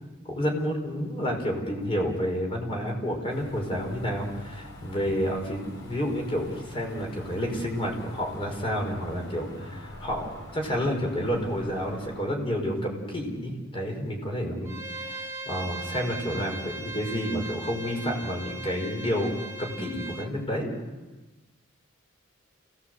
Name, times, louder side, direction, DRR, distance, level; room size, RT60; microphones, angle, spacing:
voice 1, 0.3-20.7, equal, 25° left, 1 dB, 5.3 m, -30 dB
sound 1, 3.3-12.2, left 1 dB, 80° left, 4.9 m, -43 dB
Bowed string instrument, 14.6-20.3, right 2 dB, 15° right, 1.5 m, -39 dB
28.5 x 18.0 x 8.0 m, 1.2 s
head